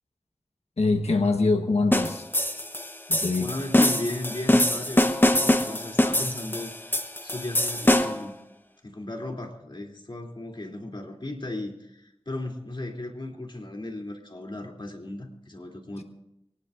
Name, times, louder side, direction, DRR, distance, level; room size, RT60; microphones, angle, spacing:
voice 1, 0.8-2.3 3.1-3.5, left 3 dB, 80° left, 5 dB, 1.3 m, -24 dB
sound 1, 1.9-8.3, left 1 dB, 20° left, 1.1 m, -23 dB
voice 2, 3.4-8.3 8.8-16.0, left 1 dB, 50° left, 1 dB, 3.1 m, -36 dB
23.5 x 19.5 x 2.6 m, 0.85 s
wide cardioid pair, 50°, 11 cm